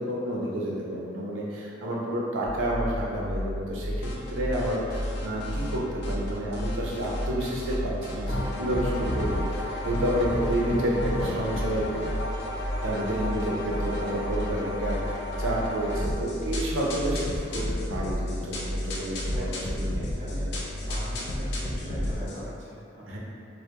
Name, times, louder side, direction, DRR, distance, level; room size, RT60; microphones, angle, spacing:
voice 1, 0.0-11.8 12.8-20.4 23.0-23.2, right 1 dB, 90° right, -4 dB, 0.5 m, -30 dB
sound 1, 2.4-22.3, equal, ahead, 0.7 m, -33 dB
sound 2, 4.0-5.8 6.0-7.8 8.0-22.4, left 1 dB, 60° left, 0.3 m, -34 dB
voice 2, 19.2-20.5 20.8-23.2, equal, 40° right, -10 dB, 0.5 m, -41 dB
2.2 x 2.1 x 2.8 m, 2.4 s
head